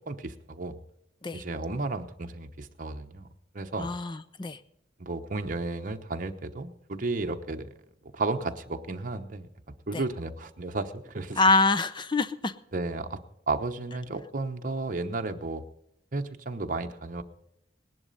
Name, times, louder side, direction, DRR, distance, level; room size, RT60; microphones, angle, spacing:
voice 1, 0.1-0.8 1.3-3.3 3.5-3.9 5.0-7.7 8.1-9.5 9.9-11.4 12.7-13.2 13.5-15.6 16.1-17.2, right 3 dB, 45° right, 5 dB, 1.0 m, -33 dB
voice 2, 3.8-4.6 11.4-12.5, left 3 dB, 25° left, 13 dB, 0.6 m, -25 dB
19.0 x 11.0 x 4.0 m, 0.81 s
head